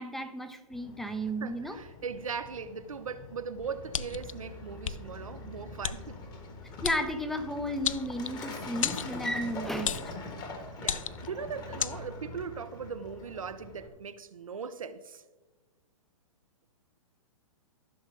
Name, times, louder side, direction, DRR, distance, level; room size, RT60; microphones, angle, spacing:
voice 1, 0.0-1.8 6.8-10.0, equal, ahead, 0.7 m, -33 dB
sound 1, 0.7-11.3, left 3 dB, 45° left, 2.8 m, -52 dB
voice 2, 1.4-6.2 10.8-15.2, right 6 dB, 80° right, 0.7 m, -39 dB
Truck, 3.6-13.9, left 2 dB, 20° left, 1.5 m, -43 dB
sound 2, 3.9-4.3 4.8-5.0 5.8-6.0 6.8-7.0 7.8-8.4 8.8-9.1 9.8-10.1 10.8-11.3 11.8-12.0, left 8 dB, 70° left, 0.4 m, -32 dB
14.0 x 6.3 x 3.8 m
figure-of-eight pair, 120°, 17 cm